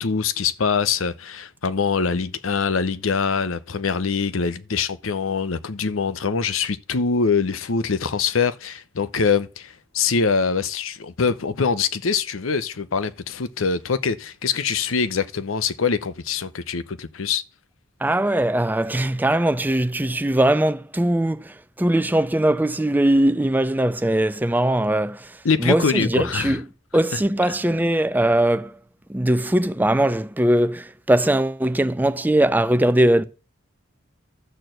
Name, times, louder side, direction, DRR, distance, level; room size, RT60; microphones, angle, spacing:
voice 1, 0.0-17.4 25.4-26.6 27.1-27.2, left 5 dB, 85° left, 0.8 m, -24 dB
voice 2, 18.0-26.6 26.9-28.8 29.1-33.2, right 1 dB, 10° right, 0.5 m, -20 dB
12.5 x 4.5 x 7.7 m
head